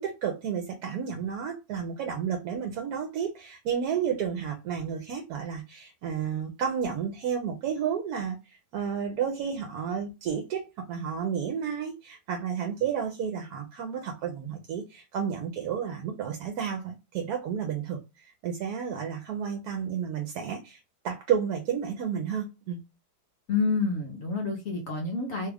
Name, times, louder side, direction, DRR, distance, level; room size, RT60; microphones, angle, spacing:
voice 1, 0.0-20.8 21.0-22.8, right 7 dB, 70° right, 1.1 m, -31 dB
voice 2, 23.5-25.5, left 4 dB, 60° left, 1.1 m, -28 dB
3.1 x 2.3 x 3.3 m
omnidirectional pair, 1.8 m